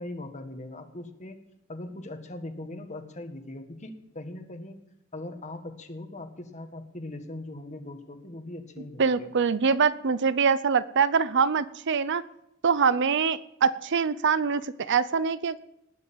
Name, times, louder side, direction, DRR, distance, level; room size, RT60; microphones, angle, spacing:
voice 1, 0.0-1.4 1.7-4.8 5.1-9.3, left 1 dB, 35° left, 6 dB, 1.7 m, -40 dB
voice 2, 9.0-12.2 12.6-15.6, right 5 dB, 55° right, 16 dB, 0.6 m, -24 dB
19.5 x 6.8 x 8.9 m, 0.81 s
head